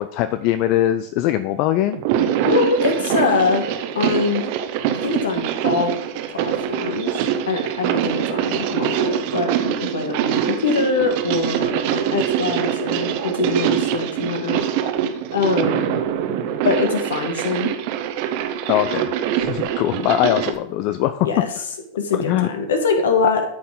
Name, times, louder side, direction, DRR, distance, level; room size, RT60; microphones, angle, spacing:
voice 1, 0.0-2.0 18.7-21.3 22.1-22.5, left 13 dB, 45° left, 12 dB, 0.5 m, -21 dB
sound 1, 1.9-20.6, right 10 dB, 45° right, 0.9 m, -24 dB
voice 2, 2.4-3.7 3.9-4.5 5.0-6.0 6.3-14.6 15.3-16.0 16.6-17.7 21.2-21.5 21.9-23.4, left 4 dB, 65° left, 6 dB, 1.6 m, -23 dB
12.5 x 5.6 x 3.9 m, 0.73 s
figure-of-eight pair, 90°, 0 cm